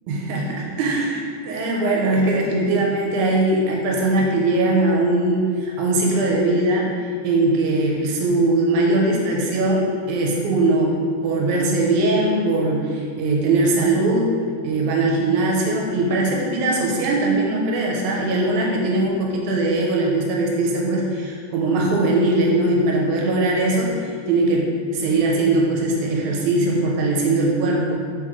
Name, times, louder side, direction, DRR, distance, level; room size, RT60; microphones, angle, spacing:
voice 1, 0.1-6.9 7.2-10.9 11.2-14.3 14.6-28.0, right 2 dB, 90° right, -2 dB, 2.0 m, -20 dB
4.6 x 3.0 x 3.6 m, 2.2 s
omnidirectional pair, 3.4 m